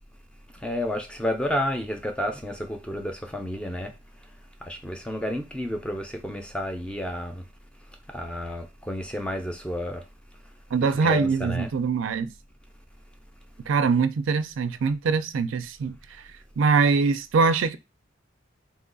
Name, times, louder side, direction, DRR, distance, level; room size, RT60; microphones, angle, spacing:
voice 1, 0.5-3.9 4.6-7.5 8.1-10.0 11.0-11.7, left 1 dB, 5° left, 0.4 m, -31 dB
voice 2, 10.7-12.3 13.7-15.9 16.6-17.8, right 4 dB, 80° right, 0.4 m, -23 dB
3.0 x 2.3 x 3.8 m
head